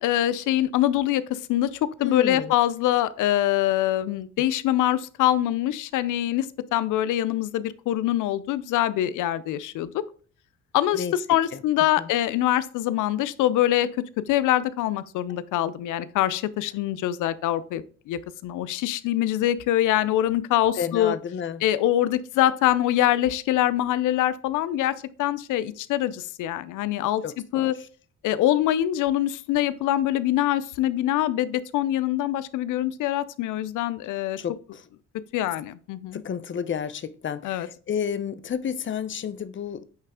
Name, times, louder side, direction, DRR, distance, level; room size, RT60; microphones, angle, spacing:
voice 1, 0.0-10.0 10.7-21.1 21.6-27.2 27.5-27.7 28.2-34.4 35.3-36.2 37.4-37.7, left 13 dB, 85° left, 0.5 m, -24 dB
voice 2, 2.0-2.5 10.9-11.6 12.0-12.1 20.8-21.6 27.2-27.7 34.4-34.9 36.1-39.8, left 7 dB, 40° left, 0.7 m, -31 dB
8.8 x 3.3 x 3.6 m
cardioid pair, 90°, 30 cm